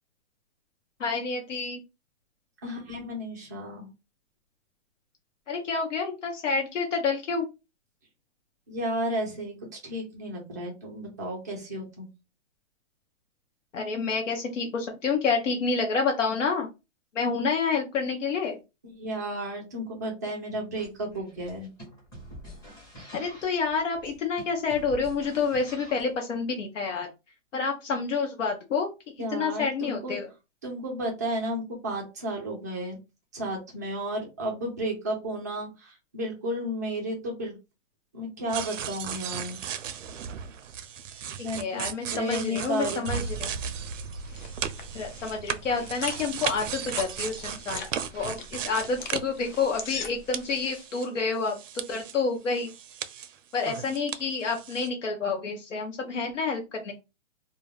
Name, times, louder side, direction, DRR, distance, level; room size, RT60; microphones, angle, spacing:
voice 1, 1.0-1.8 5.5-7.5 13.7-16.7 17.1-18.6 23.1-27.1 27.5-30.3 41.4-43.5 44.9-47.9 48.1-52.7 53.5-56.9, left 4 dB, 80° left, 2 dB, 0.8 m, -29 dB
voice 2, 2.6-3.9 8.7-9.5 9.8-12.1 19.0-21.7 29.2-30.2 30.6-33.0 33.3-37.6 38.1-39.6 41.1-43.2, right 1 dB, 15° right, -2 dB, 0.3 m, -33 dB
sound 1, 20.8-26.2, equal, 10° left, 0.9 m, -47 dB
sound 2, 38.5-50.1 50.3-52.2 52.5-54.2 54.5-54.9, right 8 dB, 85° right, 0.5 m, -36 dB
sound 3, 43.8-50.9, left 5 dB, 40° left, 0.5 m, -42 dB
2.3 x 2.2 x 3.2 m, 0.26 s
hypercardioid pair, 150°, 36 cm